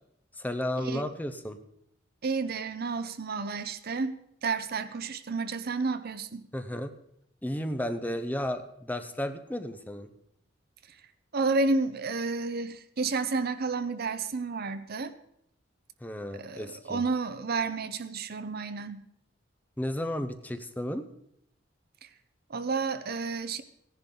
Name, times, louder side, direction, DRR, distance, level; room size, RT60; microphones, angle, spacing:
voice 1, 0.4-1.6 6.5-6.9 7.4-10.1 16.0-17.0 19.8-21.0, left 1 dB, 10° left, 0.7 m, -33 dB
voice 2, 2.2-6.5 11.3-15.1 16.4-19.1 22.0-22.1 22.5-23.6, right 4 dB, 55° right, 0.7 m, -31 dB
16.0 x 10.5 x 3.8 m
head